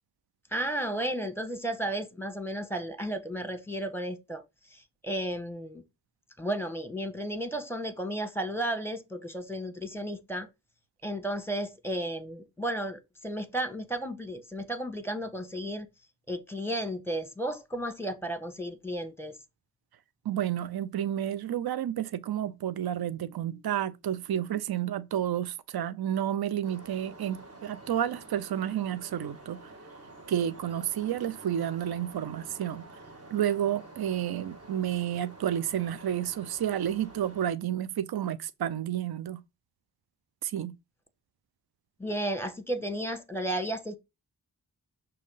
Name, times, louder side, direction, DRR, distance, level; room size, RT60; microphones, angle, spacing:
voice 1, 0.5-4.4 4.7-5.8 6.4-10.5 11.0-15.9 16.3-19.4 42.0-44.0, right 1 dB, 5° left, 1.2 m, -33 dB
voice 2, 20.3-29.6 30.3-32.8 33.3-39.4 40.4-40.7, right 10 dB, 70° right, 0.5 m, -30 dB
sound 1, 26.6-37.5, right 2 dB, 40° right, 1.5 m, -49 dB
6.2 x 2.8 x 5.4 m
cardioid pair, 50°, 39 cm